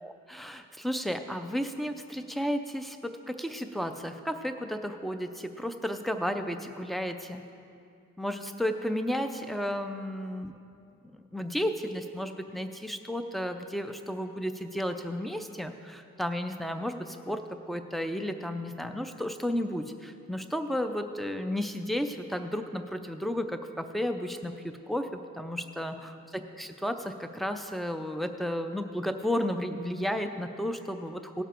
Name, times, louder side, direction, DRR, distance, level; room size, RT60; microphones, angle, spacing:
voice 1, 0.0-7.5 8.2-10.5 11.3-17.4 17.7-25.1 25.4-31.4, equal, ahead, 7 dB, 0.4 m, -33 dB
17.5 x 7.1 x 4.4 m, 2.6 s
head